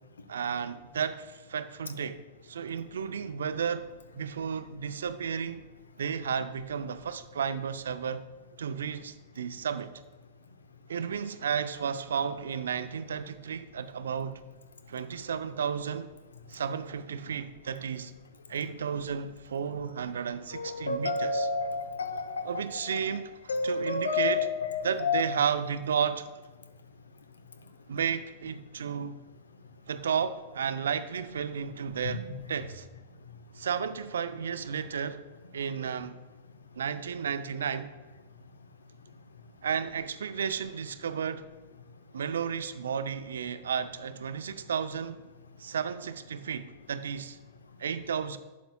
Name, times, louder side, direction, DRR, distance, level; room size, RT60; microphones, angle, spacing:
voice 1, 0.3-3.9 4.2-5.6 6.0-8.2 8.6-9.9 10.9-14.4 14.9-16.1 16.5-18.1 18.5-21.5 22.4-23.3 23.6-24.5 24.8-26.3 27.9-29.2 29.9-32.9 33.6-35.2 35.5-36.2 36.8-37.9 39.6-41.5 42.1-45.2 45.6-47.4 47.8-48.4, right 7 dB, 70° right, 0.5 m, -33 dB
voice 2, 20.5-22.6 23.5-25.2 32.0-32.2, left 4 dB, 75° left, 0.7 m, -30 dB
11.5 x 8.2 x 2.3 m
figure-of-eight pair, 95°, 0 cm